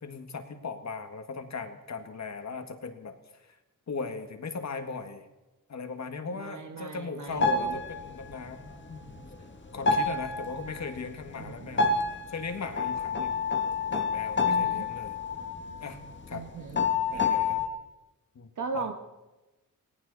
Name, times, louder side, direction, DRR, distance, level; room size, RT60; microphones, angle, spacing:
voice 1, 0.0-3.6 3.9-5.3 5.7-9.1 9.7-13.4 13.9-15.2 15.8-16.0 16.3-16.4 17.1-17.6 18.4-18.9, left 4 dB, 50° left, 7 dB, 1.7 m, -38 dB
voice 2, 6.3-7.8 11.4-11.9 14.4-14.9 16.3-16.8 18.6-18.9, right 5 dB, 60° right, 4 dB, 1.6 m, -37 dB
sound 1, 7.4-8.3 8.6-9.5 9.8-11.0 11.8-16.0 16.3-16.4 16.7-17.7, left 4 dB, 35° left, 1.6 m, -28 dB
18.5 x 18.5 x 4.1 m, 1.1 s
wide cardioid pair, 120°, 35 cm